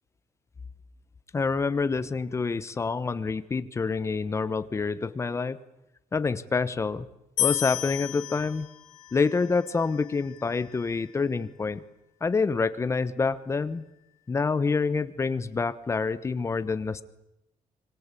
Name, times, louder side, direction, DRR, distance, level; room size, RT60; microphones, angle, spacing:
voice 1, 1.3-5.6 6.1-7.1 7.4-8.7 9.1-11.8 12.2-13.8 14.3-17.0, left 4 dB, 20° left, 14 dB, 1.0 m, -27 dB
sound 1, 7.4-10.6, left 13 dB, 60° left, 5.4 m, -33 dB
25.5 x 24.5 x 8.4 m, 0.87 s
cardioid pair, 175°, 14 cm